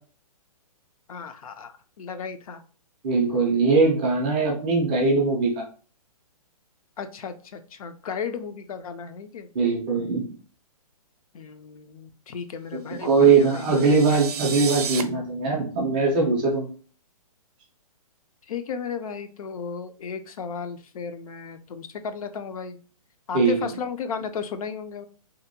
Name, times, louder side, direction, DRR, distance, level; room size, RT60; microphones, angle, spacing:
voice 1, 1.1-2.6 7.0-9.5 11.3-14.0 18.5-22.8 23.3-25.1, left 6 dB, 65° left, 9 dB, 0.4 m, -35 dB
voice 2, 3.0-5.6 9.5-10.2 13.0-16.7 23.3-23.6, right 4 dB, 15° right, -2 dB, 0.3 m, -21 dB
sound 1, 13.1-15.0, right 7 dB, 75° right, 0.5 m, -33 dB
2.7 x 2.1 x 2.6 m, 0.40 s
hypercardioid pair, 165°, 20 cm